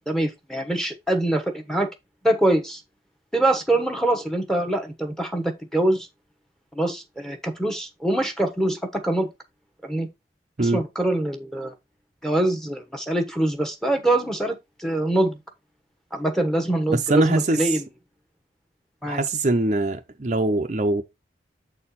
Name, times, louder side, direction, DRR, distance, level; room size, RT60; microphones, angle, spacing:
voice 1, 0.1-1.9 2.2-2.8 3.3-6.1 6.7-9.3 9.8-10.1 10.6-11.7 12.2-15.4 16.1-17.8 19.0-19.2, right 1 dB, 5° left, 1.1 m, -24 dB
voice 2, 16.9-17.8 19.1-21.0, right 2 dB, 40° right, 0.6 m, -22 dB
7.5 x 4.3 x 4.1 m
head